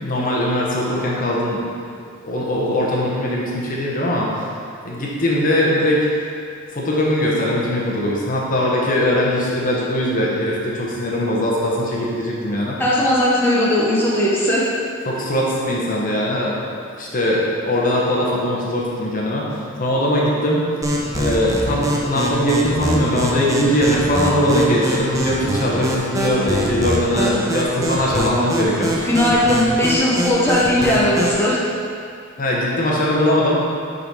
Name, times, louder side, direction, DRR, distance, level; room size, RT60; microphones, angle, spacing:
voice 1, 0.0-1.6 2.2-4.4 4.8-6.1 6.7-12.8 15.1-19.5 19.8-20.6 21.1-29.0 32.4-33.6, left 1 dB, 45° left, -4 dB, 1.0 m, -20 dB
voice 2, 12.8-14.7 27.3-27.4 29.0-31.6, left 1 dB, 10° left, -7 dB, 0.9 m, -18 dB
sound 1, 20.8-31.4, equal, 15° right, 0.7 m, -24 dB
6.6 x 4.0 x 4.8 m, 2.3 s
head